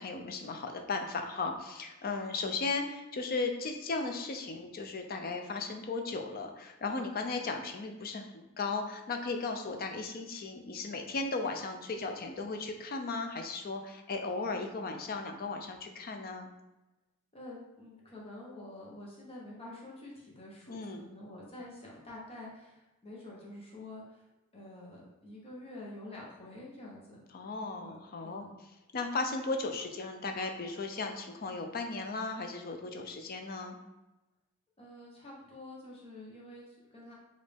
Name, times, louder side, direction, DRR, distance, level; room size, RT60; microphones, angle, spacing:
voice 1, 0.0-16.5 20.7-21.0 27.3-28.4 28.9-33.8, left 3 dB, 45° left, 5 dB, 0.5 m, -36 dB
voice 2, 17.3-24.2 24.5-27.2 27.8-28.0 28.2-28.5 34.8-37.1, left 1 dB, 25° left, -4 dB, 1.1 m, -48 dB
5.0 x 2.7 x 3.4 m, 1.0 s
head